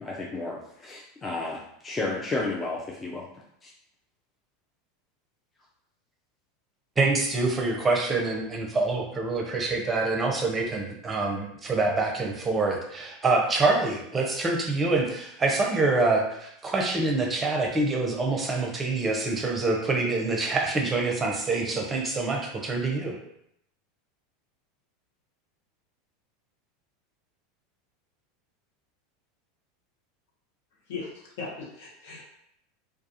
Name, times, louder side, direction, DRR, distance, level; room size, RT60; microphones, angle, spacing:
voice 1, 0.0-3.3 3.6-3.7, left 3 dB, 20° left, -3 dB, 0.4 m, -32 dB
voice 2, 7.0-23.2, right 3 dB, 25° right, 1 dB, 0.6 m, -26 dB
voice 3, 30.9-32.2, left 4 dB, 70° left, -2 dB, 0.8 m, -38 dB
2.3 x 2.3 x 2.7 m, 0.75 s
hypercardioid pair, 95°, 0 cm